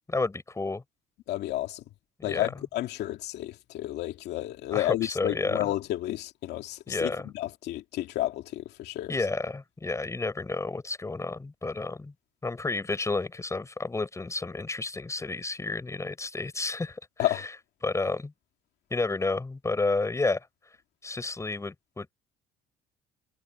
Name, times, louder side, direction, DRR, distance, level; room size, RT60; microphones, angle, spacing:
voice 1, 0.1-0.8 2.2-2.5 4.7-5.6 6.9-7.3 9.1-12.1 12.4-17.5 17.8-18.3 18.9-20.5 21.0-22.1, left 3 dB, 15° left, 7.2 m, -31 dB
voice 2, 1.3-1.8 2.2-7.1 7.3-9.1 17.2-17.5, left 15 dB, 80° left, 2.5 m, -31 dB
cardioid pair, 110°, 17 cm